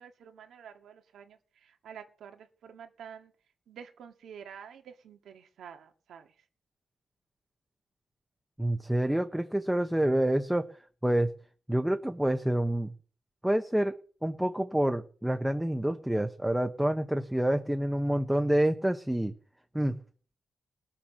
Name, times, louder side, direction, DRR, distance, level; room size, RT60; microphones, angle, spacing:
voice 1, 0.0-3.3 3.7-6.3, right 7 dB, 80° right, 5 dB, 2.3 m, -49 dB
voice 2, 8.6-10.7 11.0-11.3 11.7-12.9 13.4-13.9 14.2-19.3 19.7-20.0, right 1 dB, 5° right, 6 dB, 1.2 m, -27 dB
19.5 x 7.4 x 6.6 m, 0.42 s
cardioid pair, 85°, 0 cm